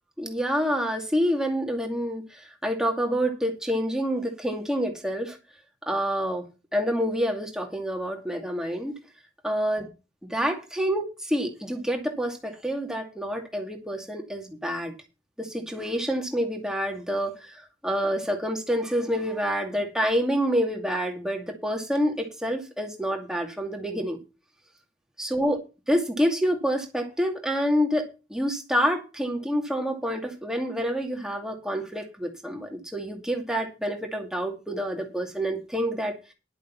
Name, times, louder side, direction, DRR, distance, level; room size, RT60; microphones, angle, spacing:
voice 1, 0.2-5.4 5.9-6.4 6.7-9.0 9.4-9.9 10.2-14.9 15.4-24.2 25.2-36.1, equal, 5° right, 3 dB, 2.4 m, -27 dB
11.5 x 7.2 x 6.0 m, 0.29 s
head